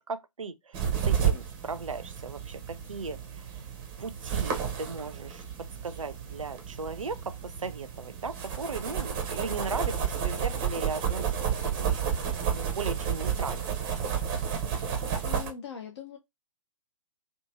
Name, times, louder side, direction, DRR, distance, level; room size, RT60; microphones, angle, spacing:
voice 1, 0.1-3.5 4.0-5.4 5.8-11.4 11.9-13.8, right 4 dB, 75° right, 0.5 m, -37 dB
sound 1, 0.7-15.5, right 8 dB, 20° right, 0.5 m, -31 dB
voice 2, 14.8-16.2, left 8 dB, 55° left, 0.5 m, -42 dB
2.8 x 2.5 x 2.4 m
figure-of-eight pair, 125°, 17 cm